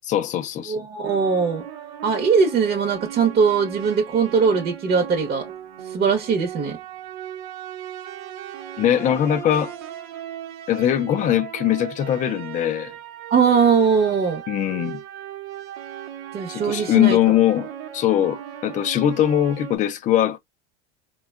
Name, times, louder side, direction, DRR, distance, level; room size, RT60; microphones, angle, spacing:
voice 1, 0.0-0.8 8.8-9.7 10.7-12.9 14.5-15.0 16.5-17.7 17.9-20.4, left 11 dB, 25° left, 0.3 m, -21 dB
voice 2, 0.7-1.6 2.0-5.5 5.8-6.8 13.3-14.4 16.3-17.2, right 6 dB, 30° right, 0.8 m, -20 dB
sound 1, 1.0-19.8, right 10 dB, 65° right, 0.8 m, -37 dB
3.4 x 2.2 x 2.2 m
supercardioid pair, 125°, 35 cm